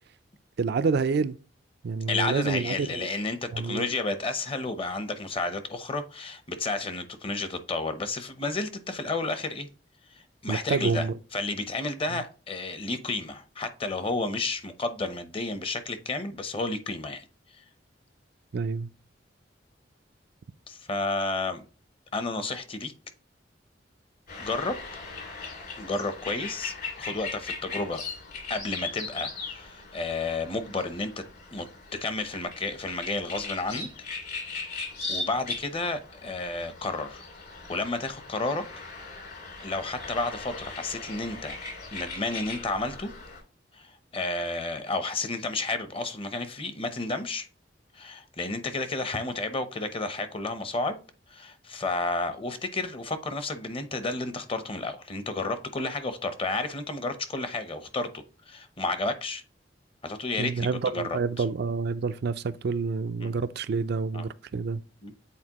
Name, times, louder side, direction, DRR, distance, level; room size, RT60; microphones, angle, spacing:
voice 1, 0.6-1.4 1.8-3.1 3.5-3.9 10.5-11.1 18.5-18.9 60.4-64.8, right 4 dB, 60° right, 0.4 m, -28 dB
voice 2, 2.1-9.7 10.1-17.2 17.5-17.6 20.7-21.6 22.1-22.9 24.4-24.8 25.8-28.0 28.5-31.2 31.5-31.7 31.9-33.9 34.4-34.8 35.1-37.2 37.7-38.6 39.6-41.6 41.9-43.1 43.7-47.5 47.9-51.0 51.3-59.4 60.0-60.7 60.9-61.4 63.2-63.4 64.1-64.2 65.0-65.1, left 3 dB, 30° left, 0.7 m, -31 dB
sound 1, 24.3-43.4, left 4 dB, 60° left, 2.4 m, -39 dB
8.5 x 4.2 x 2.9 m
head